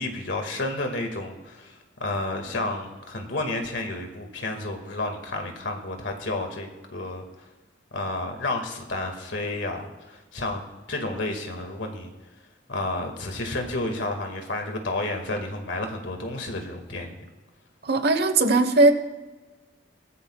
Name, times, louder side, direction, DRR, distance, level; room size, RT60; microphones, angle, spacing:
voice 1, 0.0-7.2 7.9-10.6 10.9-12.1 12.7-17.2, left 2 dB, 80° left, 4 dB, 2.0 m, -31 dB
voice 2, 17.8-18.9, right 2 dB, 60° right, 8 dB, 1.2 m, -19 dB
20.0 x 13.5 x 2.4 m, 1.3 s
head